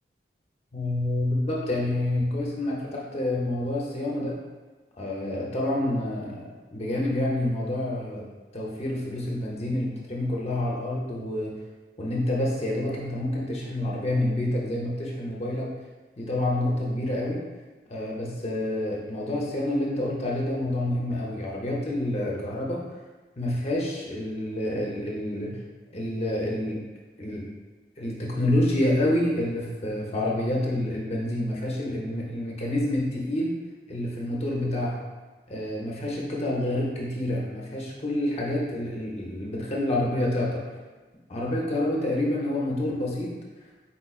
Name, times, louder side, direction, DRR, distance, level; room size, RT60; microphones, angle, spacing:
voice 1, 0.7-4.3 5.0-8.2 8.5-11.6 12.0-15.7 16.2-17.4 17.9-22.8 23.4-25.6 25.9-26.8 27.2-27.5 28.0-33.6 33.9-35.0 35.5-40.6 41.3-43.3, left 1 dB, 35° left, -3 dB, 0.7 m, -28 dB
4.3 x 4.2 x 2.4 m, 1.3 s
head